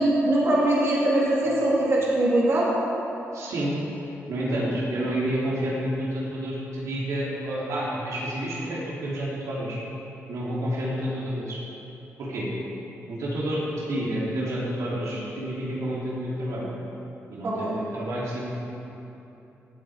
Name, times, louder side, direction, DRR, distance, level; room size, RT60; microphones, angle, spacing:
voice 1, 0.0-2.7 17.4-17.7, right 1 dB, 55° right, -5 dB, 2.5 m, -22 dB
voice 2, 3.3-3.7 4.3-9.8 10.3-11.6 12.2-12.5 13.1-13.6 13.9-16.7 17.3-18.5, right 1 dB, 85° right, -6 dB, 3.0 m, -29 dB
17.0 x 7.9 x 5.0 m, 2.9 s
wide cardioid pair, 135°, 5 cm